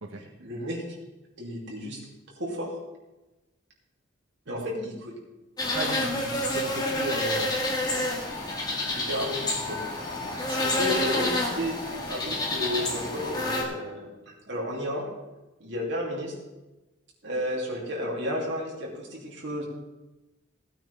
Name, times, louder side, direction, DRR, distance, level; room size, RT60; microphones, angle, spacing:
voice 1, 0.4-0.8 1.4-2.0 2.4-2.7 4.5-5.1 8.9-9.8 10.6-11.8 12.1-14.1 14.5-15.1 15.6-16.3 17.2-19.6, equal, 60° right, -3 dB, 3.0 m, -32 dB
sound 1, 5.6-13.6, left 1 dB, 20° left, 1.7 m, -28 dB
voice 2, 5.7-7.6 10.2-10.7 11.0-11.1, right 1 dB, 80° right, 2 dB, 1.4 m, -36 dB
16.0 x 8.9 x 3.6 m, 1.1 s
head